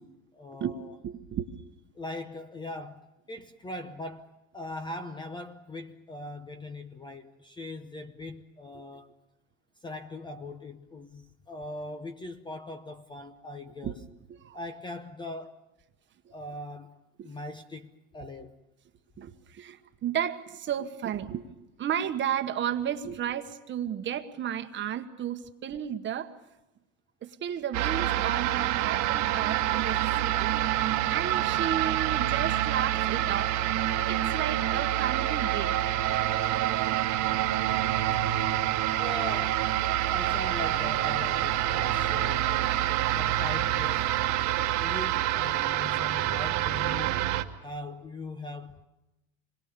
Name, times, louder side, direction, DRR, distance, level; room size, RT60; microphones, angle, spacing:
voice 1, 0.3-0.9 1.9-9.1 9.8-14.0 14.5-15.6 16.3-17.0 17.2-18.5 39.0-39.7 40.1-42.5 43.1-44.2 44.8-47.3 47.6-48.9, left 2 dB, 10° left, 0.8 m, -40 dB
voice 2, 1.0-1.5 8.7-8.9 13.8-13.9 14.3-14.6 17.2-17.3 19.2-21.4 21.8-26.3 27.2-30.6 31.1-33.5 34.1-35.8, right 9 dB, 30° right, 1.3 m, -33 dB
sound 1, 27.7-47.4, right 13 dB, 45° right, 1.5 m, -27 dB
26.0 x 21.5 x 6.9 m
supercardioid pair, 125°, 41 cm